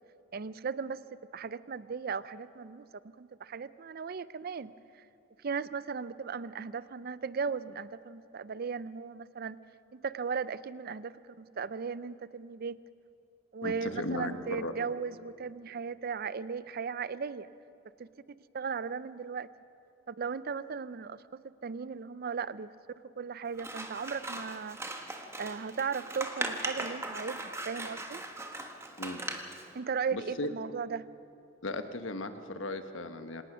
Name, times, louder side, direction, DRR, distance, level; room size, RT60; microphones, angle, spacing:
voice 1, 0.3-1.0 1.3-2.9 3.2-5.0 5.4-9.6 9.9-12.8 13.5-17.5 18.0-18.1 18.5-19.5 20.1-22.7 23.0-25.1 25.4-28.2 29.7-31.1, right 5 dB, 50° right, 16 dB, 0.5 m, -37 dB
voice 2, 13.6-14.7 29.0-29.2 30.1-30.5 31.6-33.4, left 2 dB, 75° left, 8 dB, 1.3 m, -36 dB
Scissors, 23.5-29.7, right 2 dB, 15° right, 1.4 m, -39 dB
25.5 x 18.5 x 6.2 m, 2.7 s
head